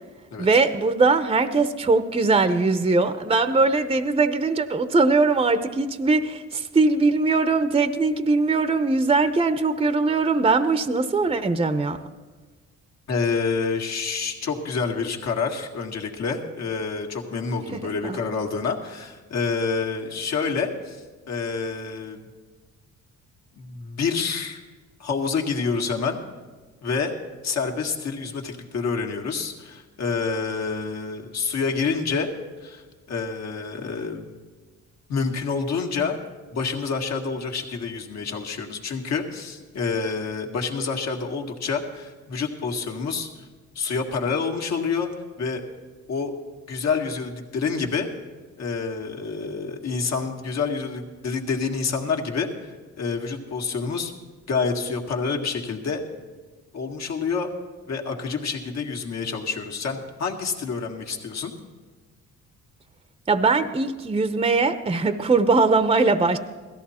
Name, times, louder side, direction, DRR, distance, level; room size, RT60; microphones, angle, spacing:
voice 1, 0.4-12.0 17.7-18.2 63.3-66.4, right 3 dB, 20° right, 11 dB, 0.7 m, -21 dB
voice 2, 13.1-21.0 21.3-22.2 23.6-24.6 25.0-26.2 26.8-27.1 27.4-32.3 32.6-34.3 35.1-36.2 36.5-43.3 43.8-45.1 45.4-45.6 46.1-46.3 46.7-48.1 48.6-52.5 53.0-54.1 54.5-56.0 56.7-57.5 57.9-61.5, left 5 dB, 60° left, 2 dB, 1.9 m, -28 dB
17.0 x 13.5 x 4.3 m, 1.4 s
cardioid pair, 90°, 30 cm